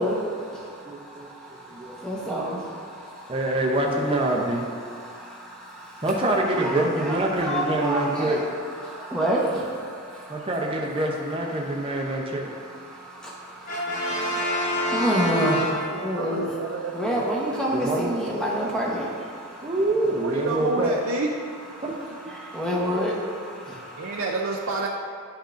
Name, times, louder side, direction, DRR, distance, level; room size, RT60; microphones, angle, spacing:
voice 1, 0.0-3.5 4.5-6.1 6.5-10.5 11.5-19.8 21.7-24.2, equal, 5° left, -5 dB, 1.0 m, -30 dB
voice 2, 0.8-1.3 1.7-2.0 3.3-4.7 6.0-8.4 10.3-12.5 17.7-18.1 19.6-21.0 21.8-21.9, right 1 dB, 25° right, -1 dB, 0.7 m, -25 dB
Brass instrument, 13.7-16.3, left 1 dB, 35° left, 0.8 m, -27 dB
voice 3, 15.9-17.8 20.1-21.3 24.0-24.9, right 3 dB, 70° right, -2 dB, 0.5 m, -29 dB
11.0 x 5.3 x 2.6 m, 2.3 s
head